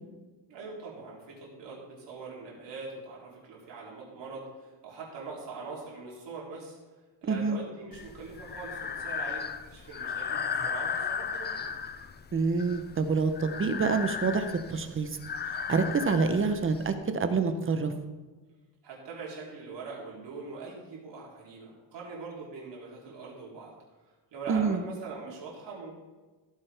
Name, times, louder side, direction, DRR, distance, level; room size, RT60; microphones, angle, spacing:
voice 1, 0.5-6.8 7.2-11.7 18.8-23.7 24.3-26.0, right 4 dB, 65° right, -4 dB, 3.4 m, -42 dB
voice 2, 7.3-7.6 12.3-15.1 15.7-17.9 24.5-24.8, right 4 dB, 30° right, 8 dB, 0.8 m, -27 dB
Breathing, 7.9-16.9, left 6 dB, 25° left, 0.4 m, -36 dB
15.0 x 8.8 x 3.4 m, 1.3 s
cardioid pair, 165°, 46 cm